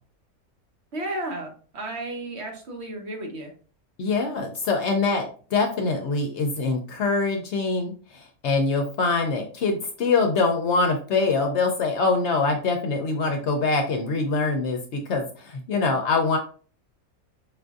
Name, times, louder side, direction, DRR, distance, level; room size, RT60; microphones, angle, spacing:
voice 1, 0.9-3.5, right 1 dB, 55° right, 1 dB, 1.0 m, -33 dB
voice 2, 4.0-16.4, left 3 dB, 65° left, 4 dB, 0.8 m, -24 dB
5.0 x 2.5 x 2.3 m, 0.40 s
omnidirectional pair, 1.5 m